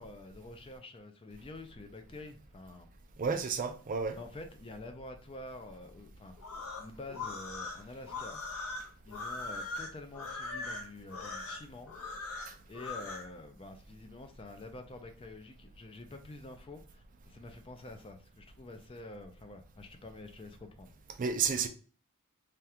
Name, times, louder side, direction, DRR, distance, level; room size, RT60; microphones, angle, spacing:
voice 1, 0.0-2.9 4.1-6.3 6.8-8.6 9.0-11.9 12.7-20.9, left 2 dB, 25° left, 0.4 m, -48 dB
voice 2, 3.2-4.2 12.5-12.6 21.2-21.7, right 5 dB, 40° right, 0.4 m, -31 dB
sound 1, 6.4-13.3, left 3 dB, 75° left, 0.9 m, -40 dB
3.4 x 2.4 x 2.7 m
head